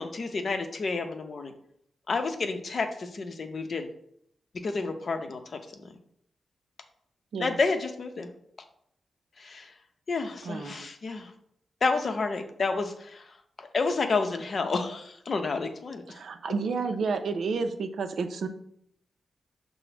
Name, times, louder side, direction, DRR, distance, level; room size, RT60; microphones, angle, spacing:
voice 1, 0.0-1.5 2.1-3.9 4.6-5.4 7.4-8.3 9.4-9.7 10.1-11.3 11.8-13.2 13.6-16.0, left 4 dB, 55° left, 6 dB, 0.6 m, -30 dB
voice 2, 10.4-10.9 16.1-18.5, right 4 dB, 75° right, 7 dB, 0.4 m, -31 dB
5.8 x 2.0 x 3.2 m, 0.72 s
cardioid pair, 70°, 0 cm